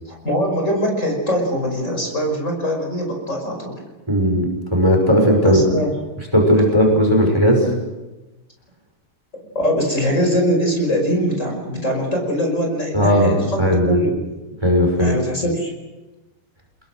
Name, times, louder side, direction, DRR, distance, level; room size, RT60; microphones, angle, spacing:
voice 1, 0.1-3.8 5.4-5.9 9.5-13.6 13.8-14.1 15.0-15.7, equal, 35° left, 1 dB, 5.8 m, -22 dB
voice 2, 4.1-4.5 4.7-5.6 6.3-7.7 12.9-14.0 14.6-15.2, equal, 10° right, 2 dB, 5.8 m, -16 dB
30.0 x 21.5 x 6.5 m, 1.1 s
omnidirectional pair, 2.4 m